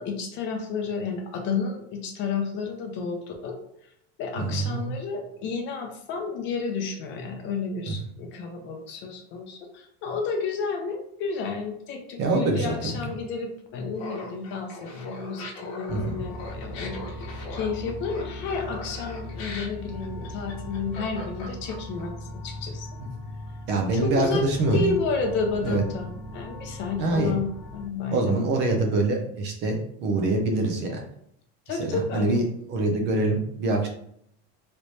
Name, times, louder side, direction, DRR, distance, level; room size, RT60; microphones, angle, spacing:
voice 1, 0.0-3.6 4.2-22.9 23.9-24.4 24.7-28.4 31.7-32.3, left 4 dB, 35° left, 3 dB, 0.6 m, -31 dB
voice 2, 4.4-4.8 7.9-8.0 12.2-13.0 15.9-16.1 23.7-24.9 25.6-25.8 27.0-27.3 28.1-31.0 31.8-32.4 32.7-33.9, right 2 dB, 35° right, 2 dB, 0.5 m, -25 dB
Laughter, 14.0-22.0, left 3 dB, 60° left, 1.1 m, -40 dB
sound 1, 15.9-27.9, left 1 dB, 10° right, 1.3 m, -39 dB
3.2 x 3.1 x 2.7 m, 0.70 s
cardioid pair, 165°, 32 cm